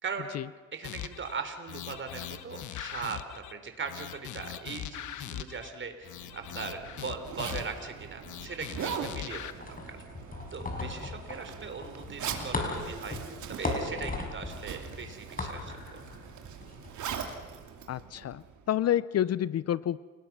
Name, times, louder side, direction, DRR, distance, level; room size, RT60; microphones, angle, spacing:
voice 1, 0.0-10.0 10.5-13.2 13.5-16.0, right 5 dB, 40° right, 7 dB, 3.6 m, -40 dB
sound 1, 0.8-1.3 1.7-3.5 3.9-5.7 6.0-7.9 8.2-9.5, left 11 dB, 75° left, 1.3 m, -40 dB
Zipper (clothing), 6.1-18.7, right 7 dB, 70° right, 2.9 m, -42 dB
sound 2, 9.6-16.9, left 2 dB, 30° left, 5.7 m, -37 dB
voice 2, 17.9-20.0, left 11 dB, 55° left, 19 dB, 0.6 m, -29 dB
29.5 x 19.5 x 6.1 m, 1.4 s
cardioid pair, 90°, 30 cm